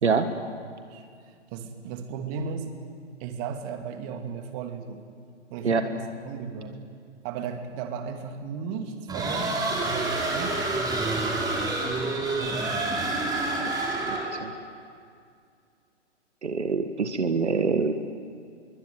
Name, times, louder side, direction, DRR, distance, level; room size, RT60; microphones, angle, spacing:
voice 1, 0.0-0.4 0.9-2.7 3.2-5.0 5.5-6.8 7.2-10.6, right 6 dB, 30° right, 6 dB, 2.6 m, -35 dB
sound 1, 9.1-14.4, right 2 dB, 10° right, 3.8 m, -28 dB
voice 2, 14.1-14.5 16.4-17.9, right 5 dB, 70° right, 8 dB, 1.7 m, -25 dB
25.0 x 23.0 x 9.3 m, 2.2 s
figure-of-eight pair, 120°, 36 cm